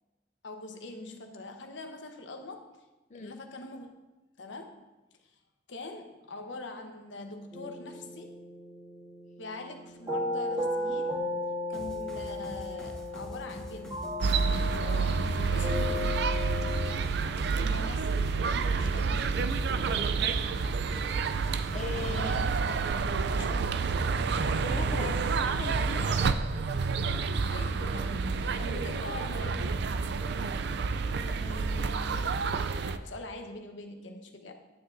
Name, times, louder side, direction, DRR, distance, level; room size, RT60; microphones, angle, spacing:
voice 1, 0.4-2.8 3.1-3.9 4.4-4.8 5.2-5.4 5.7-8.3 9.4-11.2 11.7-16.3 17.7-18.3 18.7-19.7 21.9-22.5 23.2-24.0 26.5-26.6 27.4-29.8 32.3-34.6, left 2 dB, 80° left, 4 dB, 1.0 m, -43 dB
sound 1, 7.5-16.9, left 2 dB, 25° right, 2.1 m, -35 dB
sound 2, 11.7-23.0, equal, 5° left, 1.2 m, -45 dB
sound 3, 14.2-33.0, right 5 dB, 65° right, 0.4 m, -29 dB
voice 2, 21.7-22.4 24.4-26.4 27.1-27.3 31.2-32.2, left 3 dB, 40° left, 4 dB, 0.5 m, -41 dB
9.7 x 9.2 x 2.6 m, 1.1 s
head